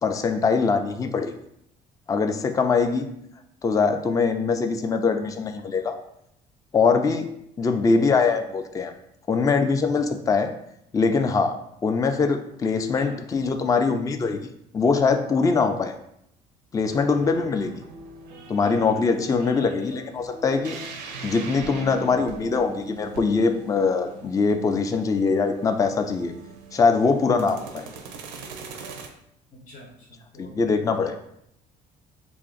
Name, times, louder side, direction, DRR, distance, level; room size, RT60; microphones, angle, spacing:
voice 1, 0.0-1.3 2.1-3.1 3.6-6.0 6.7-7.3 7.6-8.9 9.3-10.5 10.9-11.5 11.8-14.4 14.7-15.9 16.7-17.8 18.5-20.8 21.2-26.4 26.7-27.9 30.4-31.1, left 4 dB, 15° left, 7 dB, 0.3 m, -22 dB
sound 1, 16.8-29.1, right 5 dB, 90° right, 0.4 m, -41 dB
voice 2, 29.5-31.2, left 2 dB, 50° left, -1 dB, 0.8 m, -45 dB
2.5 x 2.4 x 3.8 m, 0.74 s
hypercardioid pair, 60°, 21 cm